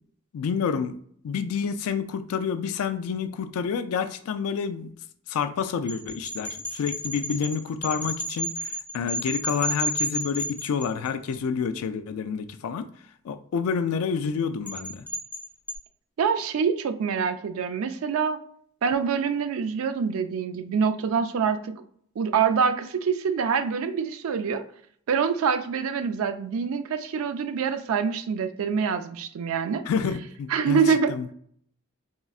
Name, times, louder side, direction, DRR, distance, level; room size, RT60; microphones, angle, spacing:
voice 1, 0.3-1.0 1.2-4.9 5.3-12.9 13.2-15.0 29.9-31.3, left 6 dB, 85° left, 9 dB, 0.3 m, -28 dB
sound 1, 5.9-11.3 14.7-15.8, equal, 5° left, 0.7 m, -32 dB
voice 2, 16.2-18.4 18.8-21.8 22.2-24.6 25.1-29.8 30.5-31.3, right 6 dB, 75° right, 10 dB, 0.3 m, -25 dB
3.8 x 2.1 x 2.3 m, 0.62 s
head